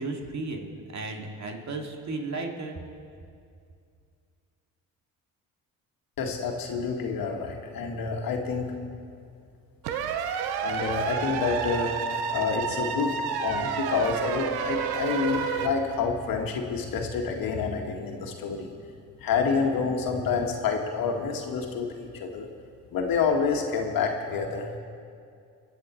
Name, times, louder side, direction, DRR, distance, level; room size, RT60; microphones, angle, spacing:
voice 1, 0.0-2.8, right 3 dB, 45° right, 2 dB, 2.5 m, -34 dB
voice 2, 6.2-8.8 10.6-12.0 12.3-13.2 13.4-18.8 19.2-22.5 22.9-24.8, left 5 dB, 65° left, 2 dB, 1.9 m, -28 dB
sound 1, 9.8-15.7, right 7 dB, 75° right, 1.0 m, -30 dB
25.5 x 8.5 x 4.5 m, 2.3 s
supercardioid pair, 65°, 37 cm